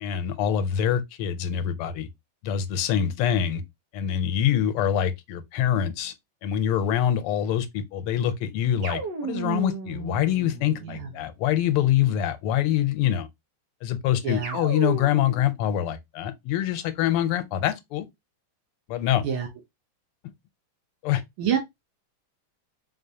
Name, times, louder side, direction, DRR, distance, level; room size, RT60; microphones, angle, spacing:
voice 1, 0.0-2.1 2.4-3.6 3.9-6.1 6.4-13.3 13.8-18.1 18.9-19.2 21.0-21.2, left 10 dB, 90° left, 1.6 m, -25 dB
sound 1, 8.8-11.3 14.4-15.4, right 5 dB, 60° right, 1.5 m, -33 dB
voice 2, 14.2-14.6 19.2-19.5 21.4-21.6, right 8 dB, 75° right, 1.7 m, -27 dB
3.8 x 3.5 x 2.7 m
omnidirectional pair, 2.4 m